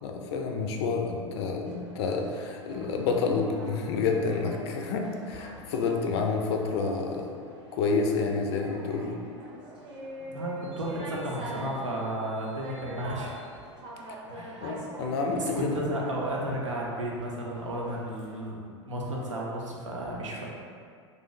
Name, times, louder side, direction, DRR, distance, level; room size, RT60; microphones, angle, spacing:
voice 1, 0.0-7.3 7.7-9.2 14.6-15.8, left 4 dB, 60° left, 2 dB, 0.4 m, -29 dB
sound 1, 1.6-18.5, right 2 dB, 30° right, 0.7 m, -44 dB
voice 2, 10.3-13.4 14.3-14.7 15.4-20.5, right 1 dB, 85° right, -3 dB, 0.6 m, -33 dB
2.5 x 2.0 x 3.9 m, 2.3 s
hypercardioid pair, 90°, 15 cm